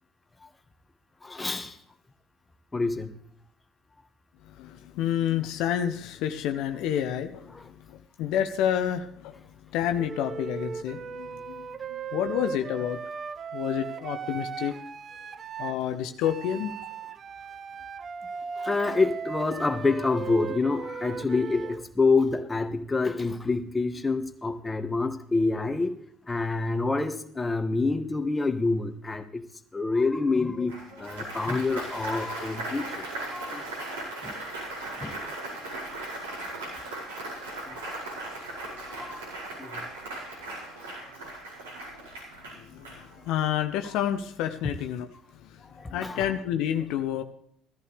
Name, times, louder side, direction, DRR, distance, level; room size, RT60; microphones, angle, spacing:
voice 1, 1.2-1.8 2.7-3.2 7.5-7.6 18.6-25.9 26.3-29.4 29.7-33.6 34.2-34.4 35.0-35.3 37.7-38.0 38.5-39.2 39.6-39.8 45.7-46.2, left 3 dB, 15° left, 8 dB, 1.4 m, -27 dB
voice 2, 4.4-9.4 9.7-13.0 13.5-14.8 15.6-16.7 42.6-45.1 45.4-45.6 45.9-47.2, left 10 dB, 65° left, 7 dB, 0.8 m, -29 dB
Wind instrument woodwind instrument, 10.0-15.8 16.2-21.8, right 6 dB, 40° right, 0.7 m, -37 dB
Applause, 30.7-43.4, right 2 dB, 85° right, 4.8 m, -38 dB
16.0 x 14.0 x 3.4 m, 0.66 s
hypercardioid pair, 55°, 0 cm